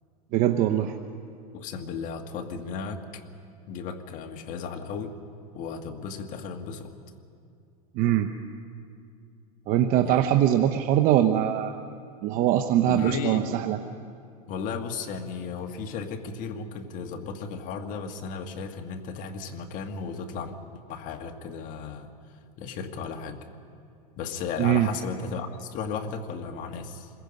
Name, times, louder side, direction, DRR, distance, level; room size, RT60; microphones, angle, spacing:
voice 1, 0.3-0.9 7.9-8.3 9.7-11.7 12.2-13.8 24.6-24.9, right 11 dB, 50° right, 6 dB, 0.9 m, -22 dB
voice 2, 1.5-3.2 3.7-5.1 5.5-6.9 10.0-10.3 12.8-13.6 14.5-20.6 20.9-22.1 22.6-23.5 24.2-27.1, left 5 dB, 45° left, 5 dB, 1.7 m, -35 dB
27.0 x 22.0 x 5.4 m, 2.3 s
supercardioid pair, 135°, 19 cm